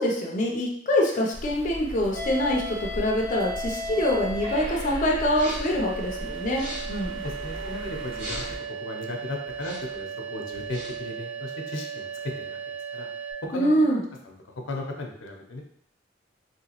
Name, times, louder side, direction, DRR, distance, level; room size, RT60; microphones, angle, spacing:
voice 1, 0.0-7.2 13.5-14.0, left 1 dB, 40° left, -1 dB, 0.4 m, -25 dB
sound 1, 1.3-8.6, equal, 85° right, 1.2 m, -38 dB
sound 2, 2.1-13.3, right 3 dB, 60° right, 1.1 m, -36 dB
sound 3, 5.3-5.8 6.4-7.0 8.1-8.7 9.5-10.0 10.5-11.1, equal, 25° right, 1.4 m, -39 dB
voice 2, 7.2-13.1 13.4-13.7 14.2-15.6, left 1 dB, 85° left, 1 dB, 0.6 m, -36 dB
3.2 x 2.8 x 2.8 m, 0.68 s
head